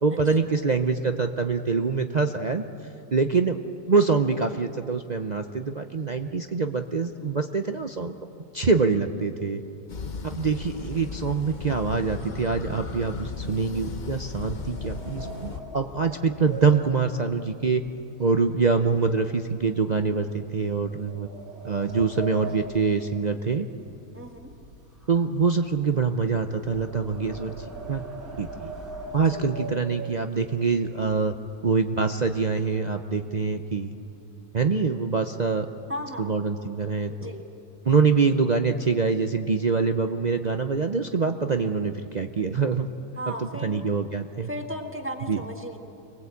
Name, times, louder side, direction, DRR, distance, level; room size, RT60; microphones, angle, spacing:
voice 1, 0.0-2.6 3.1-3.6 3.9-8.1 8.5-9.6 10.2-17.8 18.2-21.3 21.6-23.7 25.1-28.0 28.4-28.7 29.1-31.3 31.6-33.9 34.5-35.7 36.2-37.3 37.9-42.9 43.3-44.5 45.3-45.4, right 4 dB, 45° right, 6 dB, 0.5 m, -25 dB
sound 1, 9.9-15.6, left 5 dB, 35° left, 0.9 m, -36 dB
sound 2, 13.2-18.5 18.8-19.2 19.7-19.8 20.6-23.9 24.2-30.5 31.1-31.2 31.5-31.7 32.0-32.7, right 3 dB, 70° right, 3.9 m, -41 dB
voice 2, 24.1-24.5 29.1-29.5 35.9-36.3 37.2-37.4 43.2-43.8 44.5-45.8, equal, 10° right, 3 dB, 1.7 m, -36 dB
25.5 x 19.5 x 8.3 m, 2.8 s
omnidirectional pair, 1.6 m